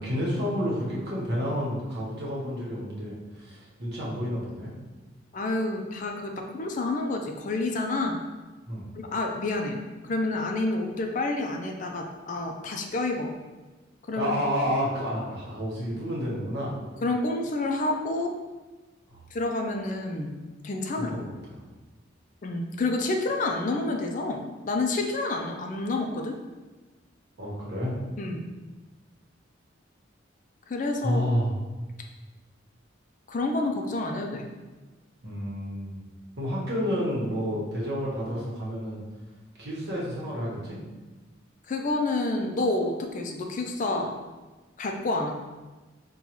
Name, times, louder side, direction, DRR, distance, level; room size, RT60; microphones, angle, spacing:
voice 1, 0.0-4.7 8.7-8.9 14.2-16.7 19.1-19.2 21.0-21.6 27.4-28.0 31.0-31.6 35.2-36.0 36.4-39.0 39.6-40.8, equal, 60° right, -5 dB, 1.1 m, -30 dB
voice 2, 5.3-8.2 9.0-13.3 14.1-14.3 17.0-18.3 19.3-20.3 20.6-21.3 22.4-26.4 28.2-28.4 30.7-31.2 33.3-34.5 41.7-44.1 44.8-45.3, left 2 dB, 40° left, 3 dB, 0.4 m, -29 dB
5.4 x 2.2 x 3.0 m, 1.2 s
head